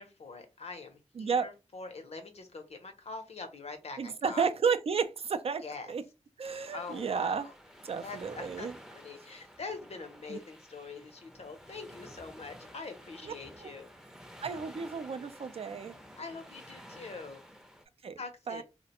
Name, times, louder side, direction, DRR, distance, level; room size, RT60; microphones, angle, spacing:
voice 1, 0.0-4.5 5.6-5.9 6.7-7.5 8.0-13.9 16.2-17.4 18.2-18.6, left 4 dB, 65° left, 0.6 m, -44 dB
voice 2, 1.2-1.5 4.0-6.0 6.4-7.5 7.8-8.7 10.3-10.4 13.2-13.3 13.6-13.7 14.4-16.0 18.0-18.1 18.5-18.6, right 6 dB, 60° right, 0.4 m, -32 dB
sound 1, 6.4-17.9, equal, 5° right, 0.5 m, -52 dB
2.4 x 2.1 x 2.9 m
cardioid pair, 45°, 12 cm